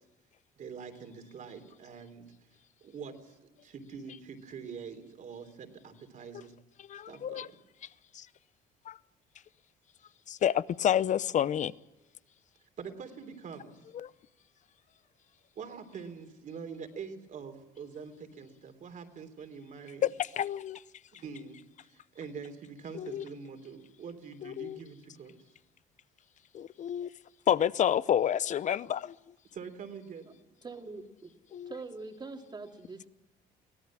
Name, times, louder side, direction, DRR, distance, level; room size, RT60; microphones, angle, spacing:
voice 1, 0.6-2.2 2.8-6.5 7.1-7.6 12.8-13.7 15.5-20.1 21.1-21.6 21.9-25.4 29.5-30.3, right 6 dB, 50° right, 3.3 m, -44 dB
voice 2, 6.9-7.5 8.2-8.3 8.9-9.0 10.3-11.7 14.0-14.1 20.2-20.8 22.9-23.2 24.4-24.8 26.5-27.1 27.5-29.1 31.5-31.7, left 10 dB, 45° left, 0.7 m, -29 dB
voice 3, 30.6-31.3 31.7-33.1, right 3 dB, 25° right, 2.7 m, -43 dB
23.0 x 17.5 x 7.4 m
cardioid pair, 110°, 17 cm